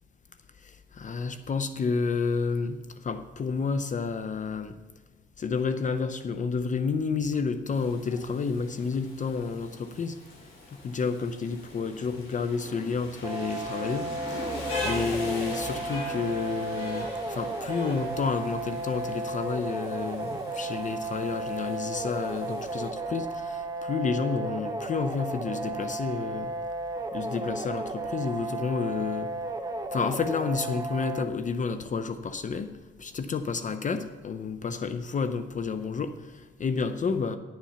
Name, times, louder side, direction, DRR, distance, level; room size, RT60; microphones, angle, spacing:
voice 1, 0.6-4.7 5.4-10.2 10.7-14.4 14.8-26.5 27.1-29.3 29.9-32.7 33.0-37.4, left 5 dB, 40° left, 10 dB, 0.6 m, -30 dB
Rain, 7.7-22.9, left 2 dB, 80° left, 3.7 m, -41 dB
sound 1, 13.2-31.2, right 2 dB, 20° right, 0.9 m, -34 dB
10.0 x 7.3 x 5.7 m, 1.2 s
cardioid pair, 90°, 20 cm